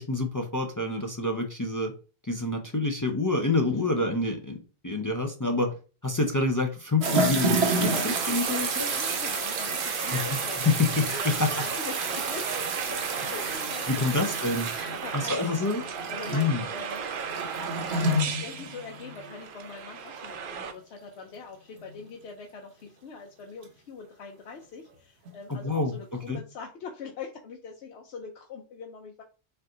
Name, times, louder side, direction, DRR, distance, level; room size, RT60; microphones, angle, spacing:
voice 1, 0.0-1.9 2.2-5.7 6.0-8.9 10.1-10.4 10.6-11.1 11.4-11.7 13.9-14.7 15.1-15.8 16.3-16.6 25.5-26.4, left 2 dB, 30° left, 3 dB, 0.4 m, -27 dB
voice 2, 3.7-4.1 8.9-10.7 11.0-12.5 12.7-14.5 14.9-15.7 16.1-17.0 17.8-29.2, left 5 dB, 90° left, 2 dB, 0.9 m, -43 dB
sound 1, 7.0-19.4 19.7-19.8 21.8-21.9 23.6-23.7 25.3-25.4 26.3-26.4, right 2 dB, 75° right, 1.1 m, -30 dB
sound 2, 7.4-20.7, right 6 dB, 60° right, 0.7 m, -35 dB
4.4 x 2.5 x 3.7 m, 0.35 s
omnidirectional pair, 1.1 m